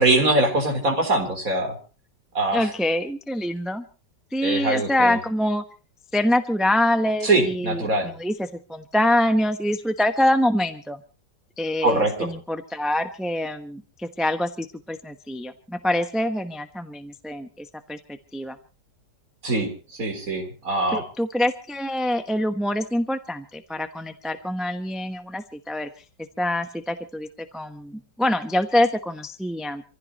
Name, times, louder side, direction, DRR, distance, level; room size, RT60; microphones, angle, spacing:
voice 1, 0.0-1.8 2.3-2.7 4.4-5.2 7.2-8.1 11.8-12.3 19.4-21.0, right 2 dB, 50° right, 3 dB, 4.6 m, -23 dB
voice 2, 2.5-3.8 4.3-5.6 6.1-11.0 11.6-18.0 18.3-18.6 20.9-25.9 26.4-27.3 27.5-29.8, left 1 dB, ahead, 8 dB, 0.7 m, -25 dB
27.0 x 15.5 x 3.0 m, 0.34 s
omnidirectional pair, 1.9 m